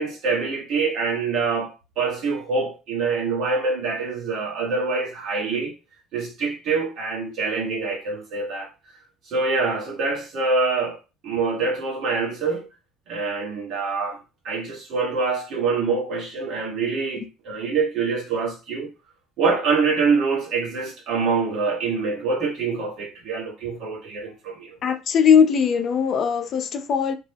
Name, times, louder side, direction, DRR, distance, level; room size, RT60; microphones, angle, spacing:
voice 1, 0.0-5.7 6.1-8.7 9.3-12.7 13.1-14.2 14.4-18.9 19.4-24.8, right 4 dB, 65° right, 1.3 m, -25 dB
voice 2, 24.8-27.1, left 7 dB, 55° left, 0.4 m, -19 dB
2.8 x 2.1 x 3.4 m
hypercardioid pair, 65°, 0 cm